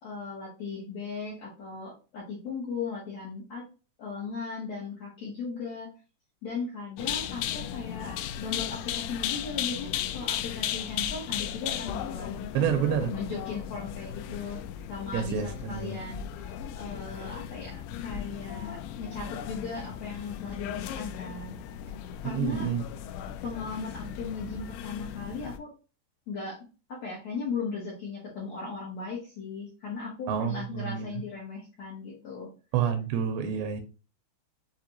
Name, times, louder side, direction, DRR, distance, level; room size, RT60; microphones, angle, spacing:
voice 1, 0.0-3.7 4.0-5.9 6.4-14.6 14.9-21.6 22.2-22.7 23.4-25.7 26.3-26.6 26.9-32.5, left 4 dB, 70° left, 1.6 m, -37 dB
sound 1, 7.0-25.6, left 10 dB, 85° left, 2.3 m, -36 dB
voice 2, 12.5-13.1 15.1-16.0 22.2-22.8 30.3-31.1 32.7-33.8, right 8 dB, 85° right, 2.8 m, -28 dB
6.9 x 2.5 x 2.9 m
omnidirectional pair, 5.2 m